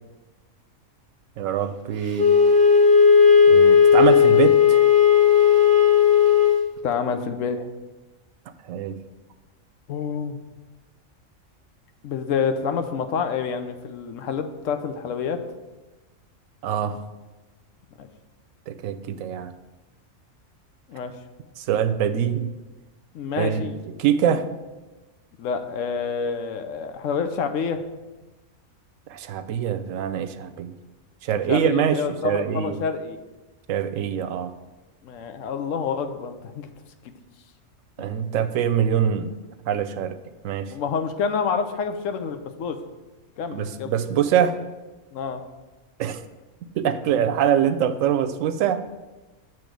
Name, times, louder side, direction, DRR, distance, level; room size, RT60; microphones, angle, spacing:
voice 1, 1.4-2.3 3.5-4.8 8.6-9.0 16.6-17.0 18.7-19.5 21.6-22.5 23.4-23.7 24.0-24.5 29.1-30.7 31.2-32.8 33.7-34.5 38.0-39.3 39.7-40.2 40.4-40.7 43.5-44.6 46.0-46.2 46.8-48.8, right 9 dB, 75° right, 9 dB, 0.9 m, -24 dB
Wind instrument woodwind instrument, 2.1-6.6, left 7 dB, 40° right, 0.9 m, -15 dB
voice 2, 6.8-7.7 9.9-10.4 12.0-15.4 18.0-18.1 20.9-21.1 23.1-23.8 25.4-27.8 31.5-33.2 35.0-36.7 38.0-38.1 40.7-42.8 43.4-43.9 45.1-45.4 47.2-47.3, left 6 dB, 80° left, 8 dB, 1.0 m, -28 dB
8.4 x 3.1 x 6.1 m, 1.2 s
omnidirectional pair, 1.4 m